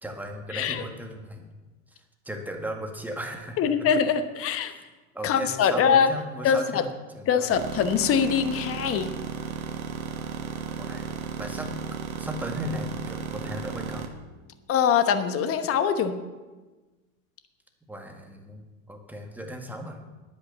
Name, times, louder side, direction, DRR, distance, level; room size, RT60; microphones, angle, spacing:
voice 1, 0.0-1.5 1.9-2.0 2.3-3.6 4.7-4.8 5.1-6.9 7.1-7.6 10.8-11.1 11.4-14.2 17.9-20.0, equal, 5° right, 3 dB, 1.9 m, -37 dB
voice 2, 0.5-0.8 3.6-4.7 5.2-6.1 6.4-6.8 7.3-9.1 14.7-16.1, left 7 dB, 35° left, 10 dB, 1.1 m, -23 dB
sound 1, 7.5-14.1, right 7 dB, 85° right, 1.4 m, -35 dB
10.0 x 8.5 x 6.9 m, 1.2 s
hypercardioid pair, 95°, 41 cm